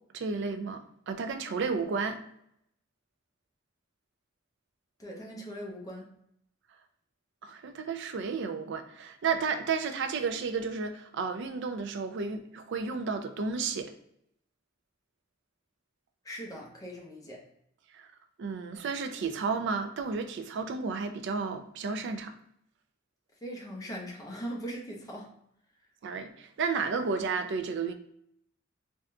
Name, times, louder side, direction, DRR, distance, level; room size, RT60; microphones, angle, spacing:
voice 1, 0.1-2.2 7.4-13.9 17.9-18.1 18.4-22.3 26.0-27.9, right 5 dB, 65° right, 8 dB, 0.4 m, -32 dB
voice 2, 5.0-6.1 16.2-17.4 23.4-25.3, equal, 20° left, -2 dB, 0.7 m, -40 dB
3.5 x 2.7 x 2.2 m, 0.73 s
head